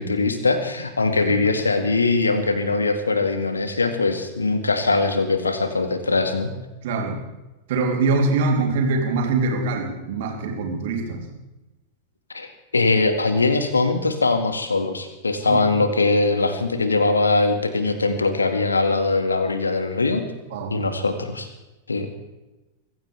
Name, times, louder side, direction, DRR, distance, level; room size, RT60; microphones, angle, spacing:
voice 1, 0.0-6.5 12.3-12.5 12.7-20.3 20.7-21.5 21.9-22.1, left 3 dB, 75° left, 8 dB, 1.9 m, -21 dB
voice 2, 6.8-7.2 7.7-11.3 15.4-15.7 20.5-20.8, right 3 dB, 55° right, 1 dB, 3.3 m, -23 dB
24.0 x 15.5 x 3.5 m, 1.0 s
figure-of-eight pair, 90°, 0 cm